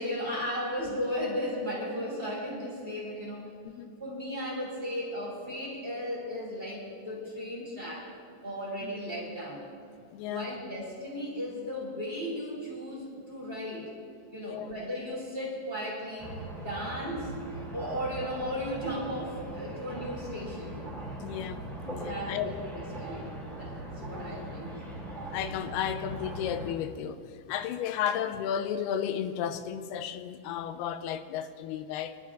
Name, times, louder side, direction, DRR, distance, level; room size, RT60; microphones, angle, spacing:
voice 1, 0.0-3.5 4.0-8.1 8.4-9.7 10.3-13.9 14.3-16.3 16.6-17.3 17.7-20.7 22.1-24.9, equal, 15° right, 2.9 m, -35 dB
voice 2, 10.1-10.5 14.4-14.7 21.2-22.7 24.1-24.5 25.3-32.2, left 9 dB, 90° left, 2.6 m, -34 dB
sound 1, 16.2-26.7, right 1 dB, ahead, 1.6 m, -40 dB
24.5 x 11.5 x 3.6 m
omnidirectional pair, 4.5 m